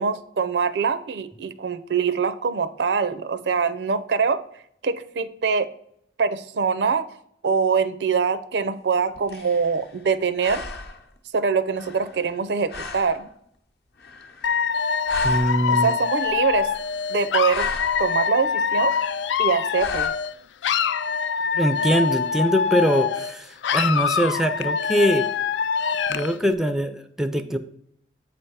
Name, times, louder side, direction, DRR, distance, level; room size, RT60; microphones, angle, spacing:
voice 1, 0.0-4.4 4.8-5.7 6.2-7.1 7.4-10.6 11.3-13.3 15.7-16.7 17.1-17.7 18.0-18.9 19.4-20.1, right 5 dB, 70° right, 13 dB, 0.5 m, -23 dB
sound 1, 8.9-10.1 10.4-11.2 11.7-12.4 12.7-13.3 14.0-14.8 15.0-15.8 16.3-17.0 17.3-18.1 18.7-19.3 19.8-20.1, left 3 dB, 60° left, 0.8 m, -36 dB
Dog / Alarm, 14.4-20.3 20.6-23.3 23.6-26.4, left 6 dB, 85° left, 0.4 m, -24 dB
voice 2, 15.2-15.9 21.5-25.3 26.1-27.6, equal, 5° right, 9 dB, 0.3 m, -22 dB
8.1 x 3.4 x 5.5 m, 0.69 s
head